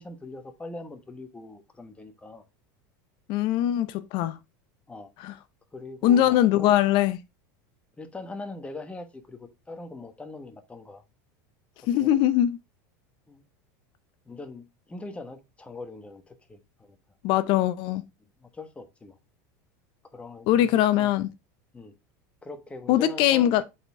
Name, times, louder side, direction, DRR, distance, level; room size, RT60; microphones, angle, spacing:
voice 1, 0.0-2.4 4.9-5.1 5.7-6.7 8.0-11.0 11.8-12.2 13.3-13.4 14.3-17.0 18.4-19.2 20.1-21.1 21.7-21.9 22.4-23.6, left 2 dB, 10° left, 1.2 m, -42 dB
voice 2, 3.3-4.4 5.2-5.3 6.0-7.2 11.9-12.6 17.2-18.0 20.5-21.3 22.9-23.6, left 12 dB, 55° left, 0.6 m, -22 dB
7.7 x 4.3 x 3.6 m
supercardioid pair, 115°, 10 cm